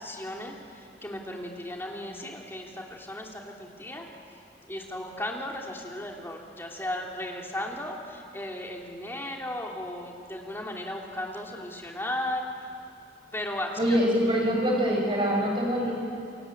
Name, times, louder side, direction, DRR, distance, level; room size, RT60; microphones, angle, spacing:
voice 1, 0.0-4.0 4.7-12.7 13.3-14.1, left 1 dB, 15° left, 0 dB, 3.0 m, -36 dB
voice 2, 13.8-15.9, equal, 30° right, -1 dB, 5.5 m, -24 dB
29.5 x 22.0 x 8.7 m, 2.6 s
head